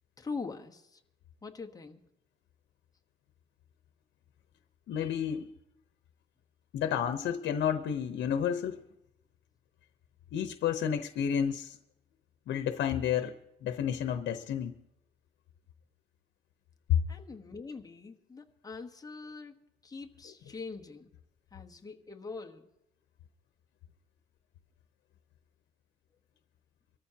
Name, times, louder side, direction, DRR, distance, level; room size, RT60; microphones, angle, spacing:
voice 1, 0.2-1.0 1.4-2.0 17.1-19.6 19.8-21.1 21.5-22.7, left 4 dB, 20° left, 1.2 m, -43 dB
voice 2, 4.9-5.5 6.7-8.8 10.3-11.8 12.5-13.3 13.6-14.8 16.9-17.0 20.3-20.4, left 9 dB, 80° left, 0.9 m, -30 dB
25.0 x 14.0 x 2.9 m
cardioid pair, 120°, 18 cm